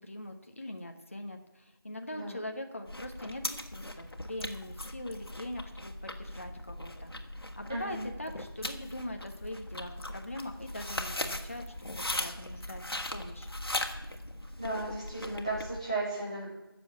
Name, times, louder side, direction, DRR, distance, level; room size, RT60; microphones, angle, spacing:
voice 1, 0.0-7.1 7.6-13.5, left 1 dB, 35° left, 4 dB, 1.2 m, -42 dB
sound 1, 2.9-15.8, left 1 dB, 75° left, 1.8 m, -39 dB
voice 2, 7.7-8.0 14.6-16.5, right 2 dB, 15° right, -7 dB, 3.2 m, -35 dB
14.5 x 7.2 x 7.1 m, 1.0 s
figure-of-eight pair, 175°, 13 cm